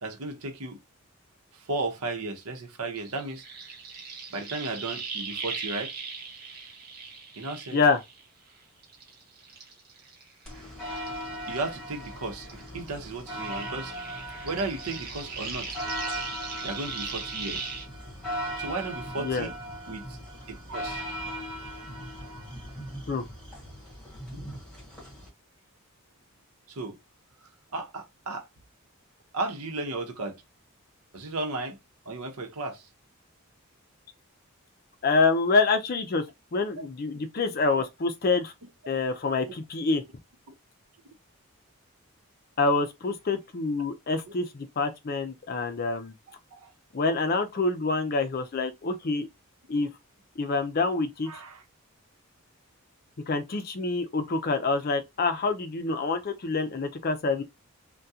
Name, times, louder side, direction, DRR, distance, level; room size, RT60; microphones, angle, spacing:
voice 1, 0.0-0.8 1.5-3.4 4.3-5.9 7.4-7.8 11.5-13.9 14.4-15.7 16.6-17.6 18.6-19.5 19.9-20.2 20.5-21.0 26.7-27.0 27.7-28.5 29.3-30.4 31.1-31.8 32.1-32.9 37.8-37.9 44.3-44.4 46.5-46.7 51.3-51.6, right 3 dB, 80° right, 0.8 m, -34 dB
sound 1, 3.0-8.5 8.8-12.2 12.4-17.8, right 5 dB, 45° right, 1.0 m, -39 dB
sound 2, 10.4-25.3, equal, 5° left, 1.6 m, -38 dB
voice 2, 19.2-19.5 23.1-23.3 35.0-36.2 36.5-38.5 38.9-40.0 42.6-46.1 46.9-49.3 49.7-49.9 50.4-51.3 53.3-57.4, left 3 dB, 40° left, 0.5 m, -26 dB
3.5 x 2.2 x 2.7 m
head